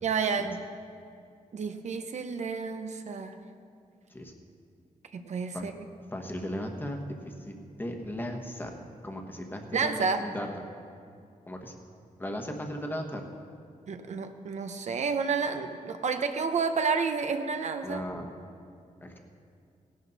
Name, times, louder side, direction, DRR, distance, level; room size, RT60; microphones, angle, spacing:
voice 1, 0.0-0.6 1.5-3.4 5.1-5.7 9.7-10.2 13.9-18.0, right 5 dB, 60° right, 7 dB, 0.7 m, -30 dB
voice 2, 6.1-7.0 7.2-8.7 9.0-10.7 11.5-11.8 12.2-13.2 17.8-18.3 19.0-19.2, equal, 15° left, 3 dB, 1.2 m, -37 dB
17.5 x 11.5 x 4.1 m, 2.4 s
wide cardioid pair, 145°, 13 cm